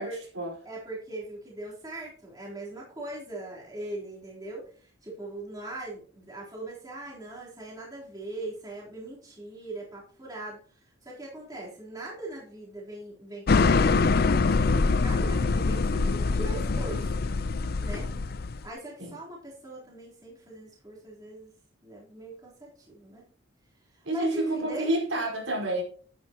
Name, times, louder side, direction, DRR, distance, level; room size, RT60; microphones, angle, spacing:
voice 1, 0.0-0.5 19.0-19.1 24.0-25.8, right 1 dB, 75° right, 4.8 m, -29 dB
voice 2, 0.7-10.6 11.0-14.4 14.9-17.1 17.8-18.1 18.6-21.5 21.8-23.2 23.9-24.9, right 2 dB, 20° right, 3.8 m, -40 dB
sound 1, 13.5-18.7, left 4 dB, 45° left, 0.5 m, -24 dB
11.5 x 10.5 x 3.0 m
head